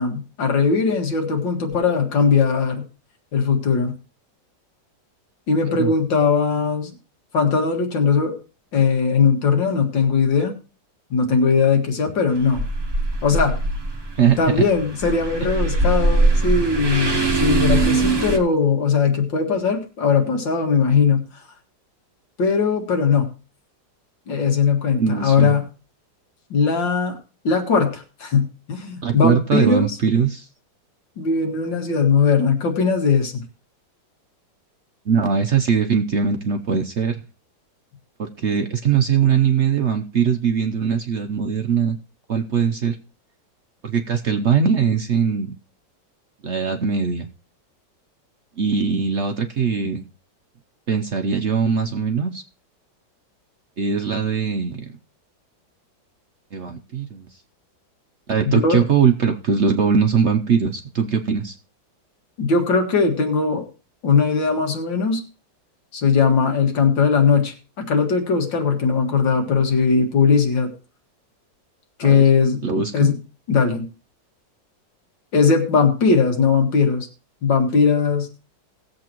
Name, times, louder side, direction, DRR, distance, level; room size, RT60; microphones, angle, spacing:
voice 1, 0.0-2.9 3.3-3.9 5.5-6.9 7.3-8.4 8.7-10.5 11.1-12.6 13.2-13.6 14.4-21.3 22.4-23.3 24.3-25.7 26.5-27.1 27.4-30.0 31.2-33.4 58.5-58.8 62.4-63.7 64.0-65.2 65.9-70.7 72.0-72.6 72.9-73.2 73.5-73.9 75.3-77.1 77.4-78.3, left 5 dB, 90° left, 4 dB, 2.5 m, -19 dB
sound 1, 12.3-18.4, right 2 dB, 20° right, 0.8 m, -21 dB
voice 2, 14.2-14.6 25.0-25.5 29.0-30.5 35.1-37.2 38.2-42.0 42.3-43.0 43.8-45.5 46.4-47.3 48.6-50.1 50.9-52.4 53.8-54.9 56.5-57.3 58.3-61.6 72.0-72.2 72.6-73.1, right 6 dB, 60° right, 5 dB, 0.7 m, -21 dB
18.5 x 7.6 x 3.0 m, 0.33 s
omnidirectional pair, 2.0 m